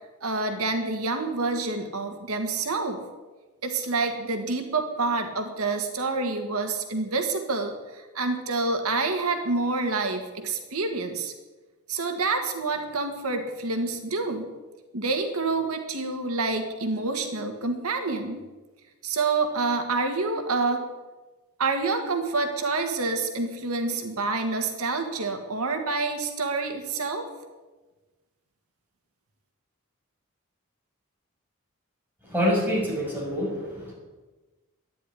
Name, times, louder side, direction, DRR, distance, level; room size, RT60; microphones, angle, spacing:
voice 1, 0.2-3.0 3.6-11.3 11.9-14.5 14.9-18.4 19.0-20.8 21.6-27.3, right 3 dB, 85° right, 5 dB, 1.6 m, -27 dB
voice 2, 32.2-33.9, equal, 10° right, -4 dB, 6.1 m, -26 dB
12.5 x 9.8 x 9.8 m, 1.2 s
head